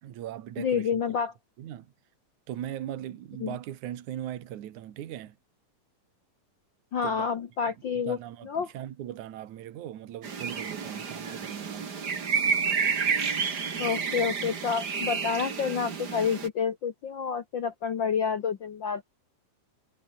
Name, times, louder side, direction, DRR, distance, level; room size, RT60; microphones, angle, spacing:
voice 1, 0.0-1.0 1.6-1.9 2.5-5.4 7.0-7.3 7.6-11.9, right 11 dB, 60° right, 2.8 m, -39 dB
voice 2, 0.6-1.3 3.4-3.6 6.9-8.2 8.4-8.7 13.8-19.0, left 6 dB, 85° left, 1.0 m, -29 dB
sound 1, 10.2-16.5, right 6 dB, 35° right, 2.1 m, -30 dB
omnidirectional pair, 4.0 m